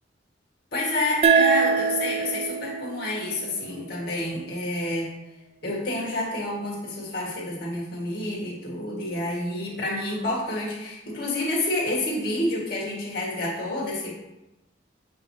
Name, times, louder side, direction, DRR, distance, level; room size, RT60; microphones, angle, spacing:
voice 1, 0.7-5.1 5.6-14.1, left 1 dB, 55° left, -5 dB, 1.7 m, -29 dB
sound 1, 1.2-4.4, right 6 dB, 30° right, 0.4 m, -24 dB
7.6 x 2.9 x 4.7 m, 0.98 s
head